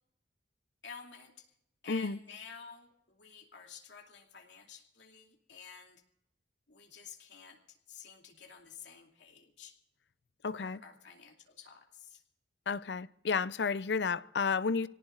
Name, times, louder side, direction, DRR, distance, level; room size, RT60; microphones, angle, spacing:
voice 1, 0.8-1.5 1.8-6.0 6.7-9.8 10.5-12.2, left 6 dB, 85° left, 2.6 m, -51 dB
voice 2, 1.9-2.2 10.4-10.8 12.7-14.9, left 5 dB, 70° left, 0.6 m, -32 dB
27.0 x 18.0 x 2.5 m
head